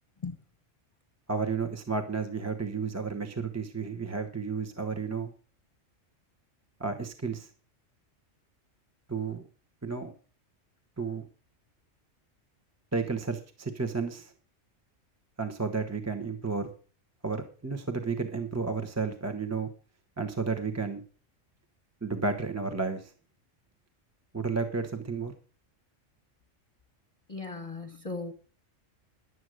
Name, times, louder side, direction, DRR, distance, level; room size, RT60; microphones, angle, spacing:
voice 1, 1.3-5.3 6.8-7.5 9.1-9.4 9.8-10.1 11.0-11.3 12.9-14.3 15.4-16.7 17.2-19.7 20.2-21.0 22.0-23.1 24.3-25.3, right 4 dB, 15° right, 6 dB, 1.0 m, -32 dB
voice 2, 27.3-28.3, left 3 dB, 30° left, 6 dB, 1.0 m, -37 dB
11.0 x 8.0 x 6.2 m, 0.39 s
omnidirectional pair, 1.3 m